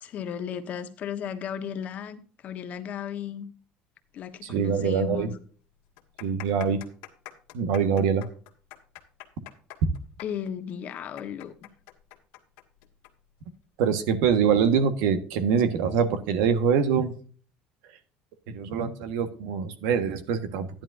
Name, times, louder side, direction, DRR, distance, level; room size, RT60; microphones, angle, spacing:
voice 1, 0.0-3.4 4.1-5.3 10.2-11.7, left 8 dB, 45° left, 1.3 m, -35 dB
voice 2, 4.4-5.3 6.2-6.8 7.5-8.2 13.8-17.1 18.5-20.8, right 7 dB, 85° right, 1.5 m, -24 dB
sound 1, 4.8-4.9 5.1-5.2 5.8-13.1 13.4-13.5 14.2-14.5, left 16 dB, 85° left, 1.8 m, -45 dB
11.5 x 10.5 x 2.6 m
cardioid pair, 135°, 4 cm